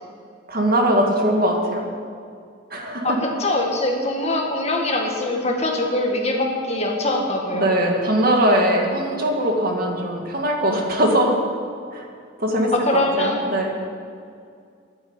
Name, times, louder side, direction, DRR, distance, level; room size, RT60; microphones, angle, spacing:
voice 1, 0.5-1.9 2.7-3.2 7.5-11.4 11.9-12.1 12.4-13.8, right 1 dB, 50° right, 1 dB, 2.0 m, -21 dB
voice 2, 3.0-7.7 12.8-13.4, left 1 dB, 35° left, 1 dB, 1.8 m, -23 dB
12.0 x 9.5 x 8.8 m, 2.3 s
head